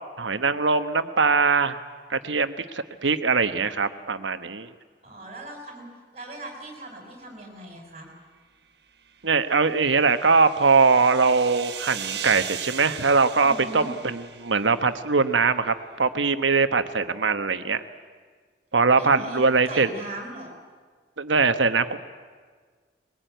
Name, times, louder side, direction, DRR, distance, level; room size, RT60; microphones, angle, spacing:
voice 1, 0.2-1.8 2.1-4.7 9.2-17.8 18.7-19.9 21.2-22.0, right 4 dB, 90° right, 10 dB, 1.2 m, -22 dB
voice 2, 5.0-5.9 6.1-8.1 13.4-13.9 19.0-20.6, right 1 dB, 35° right, 2 dB, 6.0 m, -39 dB
sound 1, 9.4-15.0, right 8 dB, 65° right, 1.1 m, -38 dB
21.5 x 20.5 x 9.2 m, 1.6 s
head